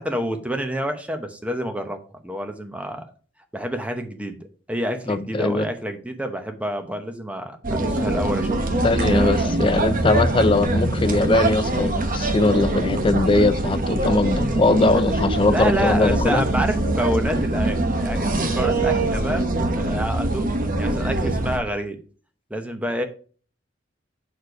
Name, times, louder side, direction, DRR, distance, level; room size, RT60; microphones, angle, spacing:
voice 1, 0.0-3.0 3.5-4.4 4.7-9.4 15.5-20.5 20.8-22.0 22.5-23.0, equal, 5° right, 0.8 m, -28 dB
voice 2, 5.1-5.7 8.8-16.4, left 2 dB, 25° left, 0.5 m, -20 dB
sound 1, 7.6-21.6, right 2 dB, 45° right, 0.9 m, -23 dB
6.6 x 4.4 x 4.6 m
head